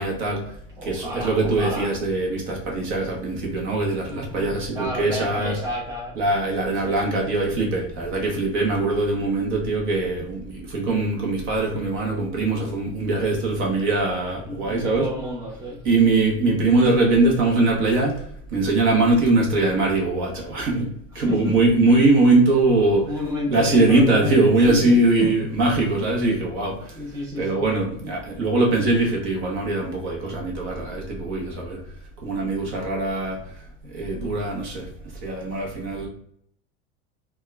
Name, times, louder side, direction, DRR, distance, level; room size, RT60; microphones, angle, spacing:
voice 1, 0.0-5.6 6.1-15.1 15.8-23.1 23.5-36.1, right 2 dB, 40° right, 1.0 m, -22 dB
voice 2, 0.8-1.9 4.1-4.5 4.7-6.2 6.6-7.2 14.4-15.8 21.2-21.6 23.0-25.3 26.9-27.6, left 1 dB, 10° right, 0.9 m, -31 dB
3.5 x 2.3 x 3.2 m
cardioid pair, 175°, 31 cm